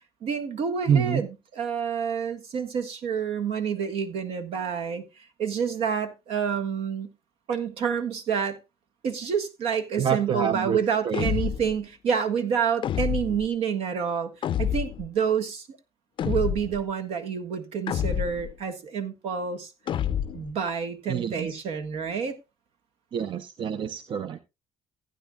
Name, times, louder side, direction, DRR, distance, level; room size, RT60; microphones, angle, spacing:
voice 1, 0.2-5.0 5.4-7.1 7.5-8.6 9.0-14.3 14.6-15.8 16.2-19.7 20.3-22.4, right 7 dB, 75° right, 1.6 m, -28 dB
voice 2, 0.9-1.2 10.0-10.8 11.0-11.3 21.1-21.5 23.1-24.4, right 8 dB, 55° right, 0.7 m, -26 dB
sound 1, 11.1-11.8 12.8-13.5 14.4-15.1 16.2-16.8 17.9-18.5 19.9-20.5, left 10 dB, 55° left, 0.4 m, -28 dB
15.5 x 9.2 x 2.4 m
cardioid pair, 80°, 10 cm